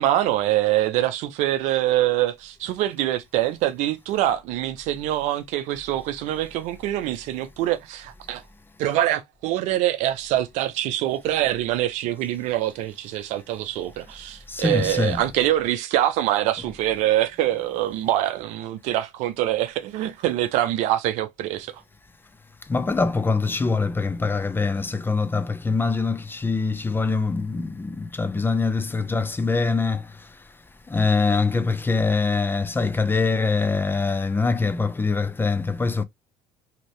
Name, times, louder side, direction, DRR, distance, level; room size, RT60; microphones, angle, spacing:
voice 1, 0.0-8.4 8.8-21.8, right 13 dB, 70° right, 0.5 m, -24 dB
voice 2, 14.5-15.2 22.7-30.1 30.9-36.0, left 4 dB, 15° left, 0.4 m, -23 dB
2.9 x 2.6 x 3.0 m
supercardioid pair, 80°, 12 cm